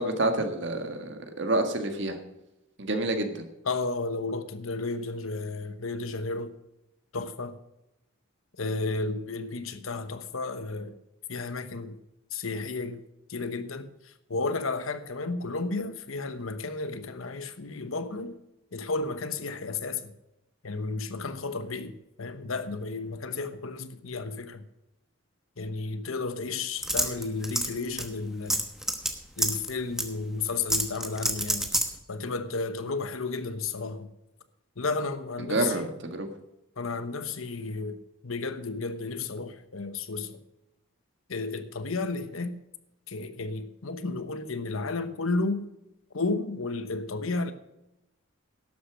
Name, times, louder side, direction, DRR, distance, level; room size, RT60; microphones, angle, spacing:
voice 1, 0.0-2.2 2.8-3.4 35.4-36.3, right 2 dB, 60° right, 1.8 m, -28 dB
voice 2, 3.7-6.5 7.1-7.6 8.6-11.0 11.3-12.0 12.3-13.0 13.3-18.4 18.7-20.1 20.6-24.6 25.6-28.6 29.4-31.7 32.1-34.1 34.8-35.9 36.8-40.4 41.3-42.6 43.1-45.7 46.1-47.5, left 3 dB, 85° left, 1.0 m, -33 dB
sound 1, 26.8-27.7 28.0-28.1 28.5-29.1 29.4-29.7 30.0-30.1 30.7-31.9, right 1 dB, ahead, 1.1 m, -26 dB
12.0 x 8.4 x 6.3 m
head